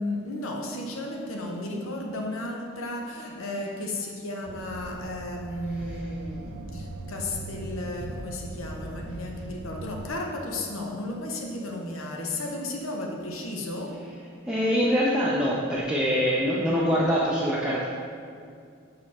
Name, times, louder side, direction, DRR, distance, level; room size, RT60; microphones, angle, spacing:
voice 1, 0.0-14.1, left 1 dB, 80° left, 1 dB, 0.9 m, -34 dB
sound 1, 4.5-10.1, right 2 dB, 75° right, 0.5 m, -39 dB
voice 2, 14.4-17.9, equal, 5° right, -7 dB, 0.5 m, -24 dB
6.1 x 5.2 x 4.2 m, 2.3 s
head